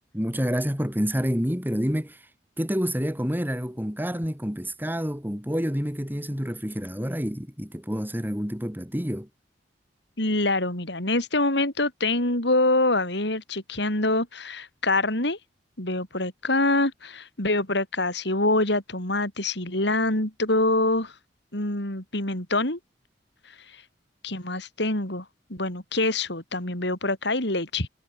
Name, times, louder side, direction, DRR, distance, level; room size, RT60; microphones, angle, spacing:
voice 1, 0.1-2.2 2.6-9.3, equal, 10° right, 7.6 m, -28 dB
voice 2, 10.2-15.4 15.8-21.1 21.5-22.8 24.2-25.2 25.5-27.9, left 2 dB, 70° left, 6.7 m, -25 dB
head